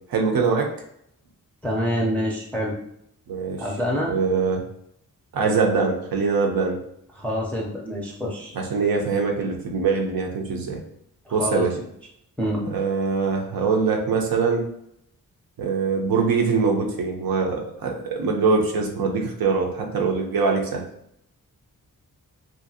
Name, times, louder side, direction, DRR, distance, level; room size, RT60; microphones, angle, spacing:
voice 1, 0.1-0.7 3.3-3.6 4.1-4.6 5.3-6.8 8.5-10.8 11.3-11.7 12.6-14.7 15.6-20.8, right 4 dB, 75° right, 1 dB, 0.6 m, -23 dB
voice 2, 1.6-2.7 3.6-4.1 7.1-8.5 11.2-11.6 12.4-12.6, equal, 5° left, -3 dB, 0.5 m, -26 dB
2.9 x 2.5 x 2.7 m, 0.73 s
wide cardioid pair, 100°, 35 cm